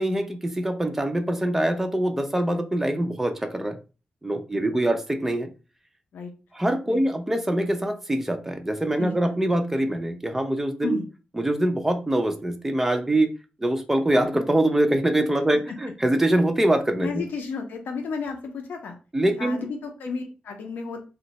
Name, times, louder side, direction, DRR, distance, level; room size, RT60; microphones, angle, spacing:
voice 1, 0.0-3.8 4.2-5.5 6.5-11.0 11.4-13.3 13.6-17.1 19.1-19.6, right 1 dB, 10° right, 6 dB, 0.5 m, -24 dB
voice 2, 9.0-9.4 10.8-11.1 15.5-15.8 17.0-19.0 19.3-21.0, left 5 dB, 80° left, 3 dB, 0.5 m, -33 dB
2.6 x 2.1 x 3.9 m, 0.33 s
wide cardioid pair, 135°, 3 cm